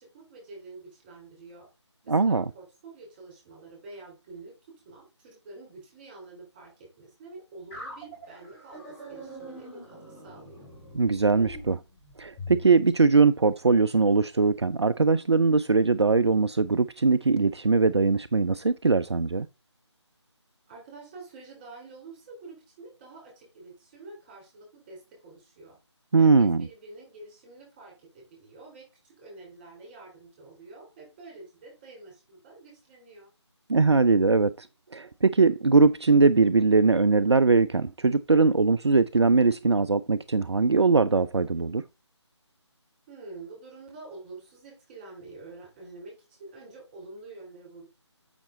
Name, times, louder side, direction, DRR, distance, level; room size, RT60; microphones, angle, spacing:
voice 1, 0.0-1.7 2.0-4.5 4.8-6.7 7.0-10.7 20.7-25.8 26.2-33.3 43.1-47.9, right 3 dB, 20° right, 4.0 m, -47 dB
voice 2, 2.1-2.4 10.9-11.8 12.2-19.5 26.1-26.7 33.7-34.7 34.9-41.8, right 4 dB, 65° right, 0.5 m, -21 dB
sound 1, 7.7-12.6, equal, 10° left, 2.7 m, -43 dB
7.3 x 6.0 x 3.7 m
figure-of-eight pair, 155°, 15 cm